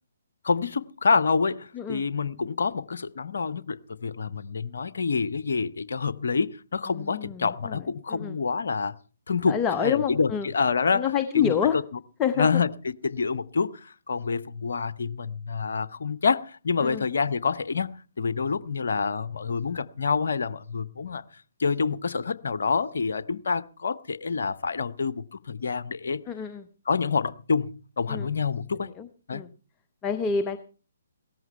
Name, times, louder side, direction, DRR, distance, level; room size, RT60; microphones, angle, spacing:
voice 1, 0.4-9.0 9.3-11.8 12.4-21.2 21.6-26.2 26.9-28.9 29.3-29.4, left 5 dB, 60° left, 0.7 m, -27 dB
voice 2, 6.9-7.8 8.1-8.4 9.5-10.5 10.9-11.8 12.2-12.6 16.8-17.0 26.3-26.7 28.1-28.3 28.7-29.5 30.0-30.6, left 7 dB, 15° left, 0.8 m, -28 dB
17.0 x 14.0 x 4.4 m
figure-of-eight pair, 130°, 0 cm